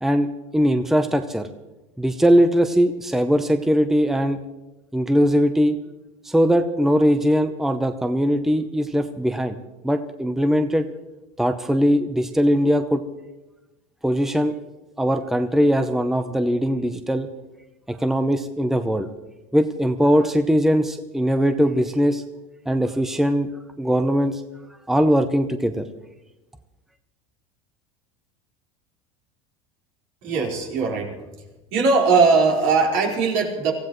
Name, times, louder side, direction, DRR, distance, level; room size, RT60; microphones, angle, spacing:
voice 1, 0.0-1.5 2.0-4.4 4.9-5.8 6.2-9.6 9.8-10.9 11.4-13.0 14.0-14.5 15.0-17.3 17.9-19.1 19.5-22.2 22.7-23.5 23.8-24.4 24.9-25.8, equal, ahead, 8 dB, 0.7 m, -20 dB
voice 2, 30.2-31.2 31.7-33.7, right 4 dB, 70° right, -1 dB, 4.5 m, -19 dB
24.5 x 15.5 x 3.1 m, 1.0 s
supercardioid pair, 110°, 18 cm